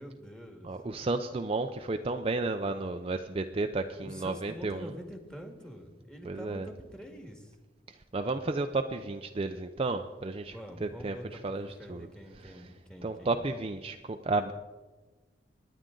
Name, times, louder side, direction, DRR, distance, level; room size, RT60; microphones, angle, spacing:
voice 1, 0.0-0.7 4.0-7.5 10.5-13.5, equal, 5° left, 4 dB, 1.8 m, -46 dB
voice 2, 0.6-4.9 6.3-6.7 8.1-10.6 10.8-12.1 12.4-12.6 13.0-14.5, right 3 dB, 35° right, 6 dB, 0.5 m, -32 dB
26.0 x 10.0 x 3.9 m, 1.3 s
head